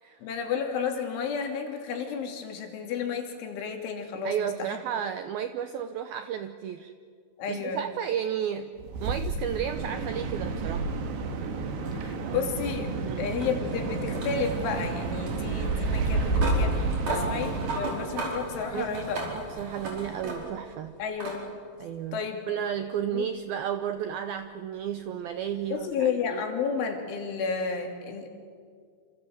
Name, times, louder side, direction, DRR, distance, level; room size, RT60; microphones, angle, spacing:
voice 1, 0.2-4.8 7.4-7.8 11.9-12.9 13.2-19.2 21.0-21.5 22.1-22.4 23.1-23.3 25.7-28.3, left 6 dB, 80° left, 3 dB, 5.2 m, -32 dB
voice 2, 4.2-6.9 7.5-8.7 9.0-10.9 12.2-12.4 13.1-13.2 17.1-17.3 18.7-19.1 19.3-21.0 21.8-26.4, right 9 dB, 85° right, 9 dB, 2.1 m, -33 dB
sound 1, 8.8-17.8, right 3 dB, 70° right, 4.1 m, -30 dB
sound 2, 11.9-20.7 21.2-21.4 22.7-22.8 25.7-25.8, right 2 dB, 40° right, 6.2 m, -37 dB
27.5 x 27.5 x 7.9 m, 2.1 s
omnidirectional pair, 5.4 m